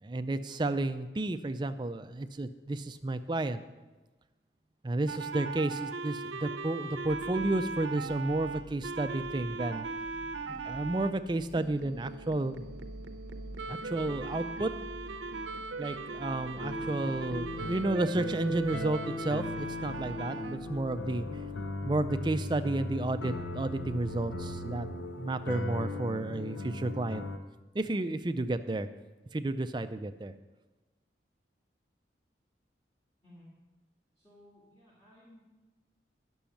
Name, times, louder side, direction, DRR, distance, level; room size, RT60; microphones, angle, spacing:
voice 1, 0.0-3.6 4.8-9.9 10.6-12.6 13.7-14.7 15.8-21.3 21.8-24.9 25.2-27.2 27.7-28.9 29.3-30.3, right 2 dB, 25° right, 10 dB, 0.4 m, -32 dB
sound 1, 5.1-11.1 11.6-20.6, right 4 dB, 80° right, 0.7 m, -39 dB
sound 2, 7.0-24.9, right 1 dB, 40° left, 1.2 m, -51 dB
sound 3, 16.6-27.4, left 2 dB, 90° left, 0.8 m, -38 dB
voice 2, 34.2-35.4, left 1 dB, 15° left, -7 dB, 2.2 m, -57 dB
10.0 x 6.2 x 7.0 m, 1.2 s
head